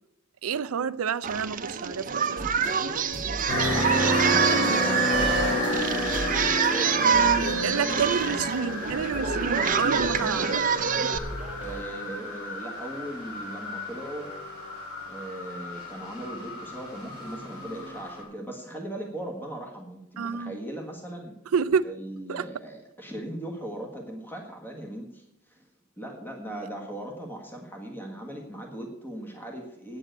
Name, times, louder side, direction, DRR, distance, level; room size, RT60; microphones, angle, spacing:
voice 1, 0.4-2.4 7.6-10.6 20.2-20.6 21.5-21.9 22.3-22.5, right 6 dB, 75° right, 0.5 m, -29 dB
Singing, 1.2-11.2, right 6 dB, 40° right, 0.7 m, -26 dB
sound 1, 2.4-11.8, right 1 dB, 5° right, 2.0 m, -40 dB
sound 2, 3.5-18.2, left 1 dB, 55° left, 5.9 m, -31 dB
voice 2, 3.6-8.8 10.1-10.5 11.5-14.3 15.0-21.4 21.8-25.6 26.0-30.0, right 1 dB, 10° left, 1.5 m, -39 dB
9.1 x 7.5 x 9.0 m
head